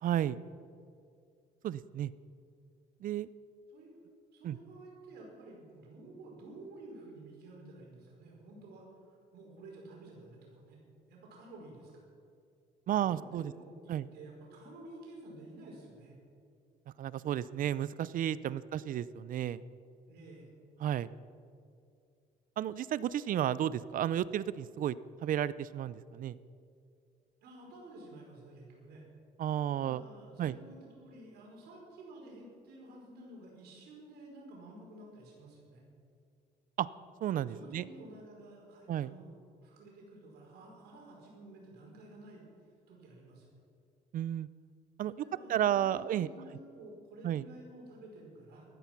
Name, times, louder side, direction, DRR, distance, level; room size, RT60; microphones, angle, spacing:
voice 1, 0.0-0.4 1.6-2.1 3.0-3.3 4.4-4.6 12.9-13.5 13.9-14.1 17.0-19.6 20.8-21.1 22.6-24.9 25.2-26.4 29.4-30.0 30.4-30.6 36.8-36.9 37.2-37.8 38.9-39.1 44.1-44.5 45.0-45.1 45.5-46.3 47.2-47.5, right 11 dB, 55° right, 18 dB, 0.5 m, -32 dB
voice 2, 4.3-10.8 11.1-11.9 12.9-16.1 18.4-18.6 20.1-20.5 27.4-29.1 29.7-35.8 37.5-42.4 42.9-43.5 45.1-48.7, right 2 dB, 75° right, -2 dB, 4.9 m, -52 dB
16.0 x 13.5 x 6.0 m, 2.3 s
cardioid pair, 110°, 17 cm